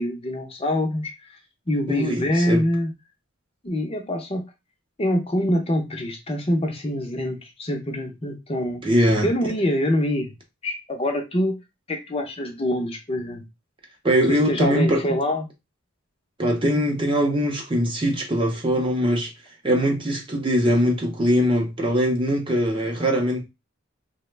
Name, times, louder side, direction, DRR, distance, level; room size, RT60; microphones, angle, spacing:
voice 1, 0.0-1.4 1.7-2.9 3.6-4.4 5.0-8.8 9.2-10.3 10.6-11.6 11.9-13.4 14.3-15.5, left 1 dB, 30° left, 0.6 m, -25 dB
voice 2, 1.9-2.6 8.8-9.3 14.0-15.0 16.4-19.3 19.6-23.4, equal, 25° right, 0.6 m, -21 dB
3.1 x 2.1 x 3.1 m
head